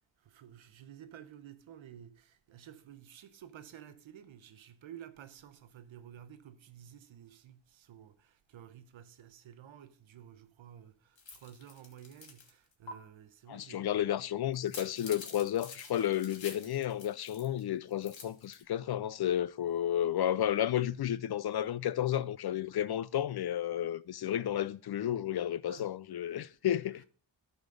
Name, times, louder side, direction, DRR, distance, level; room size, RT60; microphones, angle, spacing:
voice 1, 0.2-14.2 20.7-20.8 25.7-25.9 26.3-26.5 26.9-27.1, right 10 dB, 90° right, 0.9 m, -53 dB
sound 1, 11.2-12.5 12.9-13.0 14.5-17.6 17.9-18.6, left 4 dB, 75° left, 1.8 m, -48 dB
voice 2, 13.5-27.0, left 11 dB, 60° left, 0.5 m, -32 dB
12.0 x 4.1 x 5.2 m
cardioid pair, 75°, 45 cm